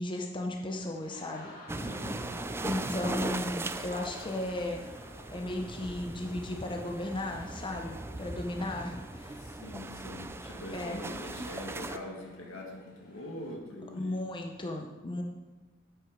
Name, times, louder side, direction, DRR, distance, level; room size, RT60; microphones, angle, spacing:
voice 1, 0.0-1.5 2.6-4.8 5.3-9.4 10.7-11.1 13.9-15.2, left 1 dB, 25° left, 2 dB, 0.7 m, -35 dB
sound 1, 0.8-13.6, left 1 dB, 45° left, 1.6 m, -54 dB
sound 2, 1.7-12.0, right 2 dB, 10° right, 0.3 m, -39 dB
voice 2, 1.8-2.3 9.4-14.2, left 1 dB, 80° left, 0 dB, 1.9 m, -43 dB
7.9 x 7.7 x 5.1 m, 1.2 s
head